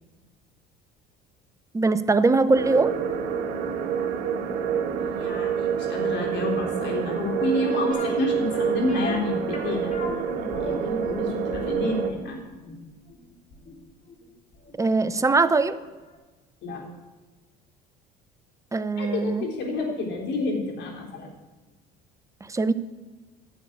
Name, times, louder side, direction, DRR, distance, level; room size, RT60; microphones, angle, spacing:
voice 1, 1.7-2.9 14.8-15.8 18.7-19.4 22.5-22.7, right 3 dB, 15° right, 13 dB, 0.7 m, -21 dB
sound 1, 2.5-12.1, right 7 dB, 65° right, 1.7 m, -27 dB
voice 2, 5.1-9.9 10.4-12.4 16.6-16.8 19.0-21.3, left 2 dB, 60° left, 1 dB, 3.6 m, -29 dB
sound 2, 7.9-14.8 15.0-15.1 15.7-15.8 16.1-16.2, left 3 dB, 35° left, 3.6 m, -38 dB
11.0 x 7.2 x 8.5 m, 1.2 s
supercardioid pair, 85°, 21 cm